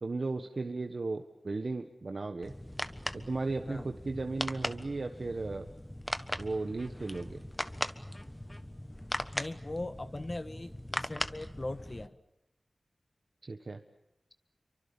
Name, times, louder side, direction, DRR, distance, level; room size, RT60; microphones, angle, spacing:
voice 1, 0.0-2.5 3.1-5.7 6.4-7.4 13.4-13.8, right 3 dB, 60° right, 5 dB, 1.4 m, -35 dB
sound 1, 2.4-12.1, left 1 dB, 10° left, 1.4 m, -39 dB
voice 2, 9.3-12.2, left 2 dB, 40° left, 9 dB, 1.4 m, -40 dB
28.0 x 24.5 x 7.1 m, 0.89 s
wide cardioid pair, 75°, 0 cm